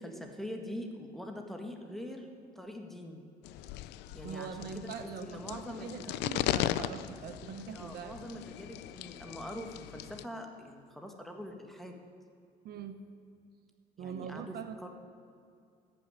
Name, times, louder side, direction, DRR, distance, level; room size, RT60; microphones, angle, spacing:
voice 1, 0.0-2.3 2.5-3.2 4.1-4.7 5.0-6.3 7.7-12.0 14.0-14.6 14.8-14.9, equal, ahead, 3 dB, 1.5 m, -43 dB
sound 1, 3.4-10.2, left 13 dB, 85° left, 0.5 m, -38 dB
voice 2, 4.2-8.2 12.6-13.0 14.0-14.9, right 7 dB, 65° right, 8 dB, 0.9 m, -42 dB
14.0 x 6.2 x 9.7 m, 2.4 s
cardioid pair, 110°, 17 cm